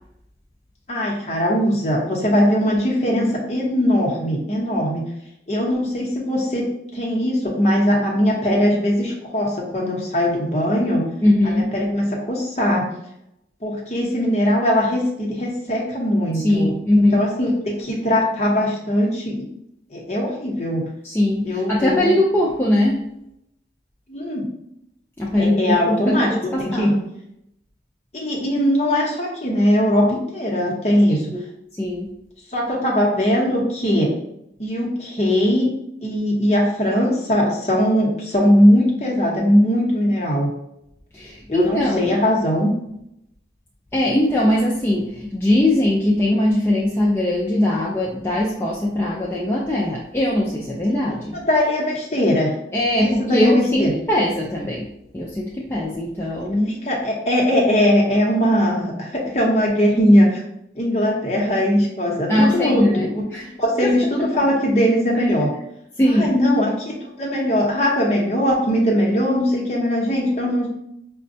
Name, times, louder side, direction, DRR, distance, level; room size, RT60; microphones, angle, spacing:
voice 1, 0.9-5.0 5.5-6.7 6.9-11.0 11.4-12.9 13.6-17.5 17.8-19.3 19.9-20.8 21.4-22.1 24.1-24.4 25.3-26.3 26.6-26.9 28.1-31.3 32.5-34.1 34.6-35.7 36.0-40.5 41.5-42.7 51.3-52.5 53.0-53.9 56.7-60.4 60.7-63.2 63.6-65.5 66.2-70.7, equal, 35° left, -2 dB, 0.8 m, -20 dB
voice 2, 11.2-11.7 16.3-17.2 21.0-23.1 25.2-27.0 31.3-31.4 31.7-32.1 41.1-42.1 43.9-51.4 52.7-56.7 62.3-63.5 63.8-64.0 64.3-64.5 66.0-66.4, left 1 dB, 15° left, -5 dB, 0.4 m, -20 dB
5.1 x 2.2 x 2.7 m, 0.80 s
head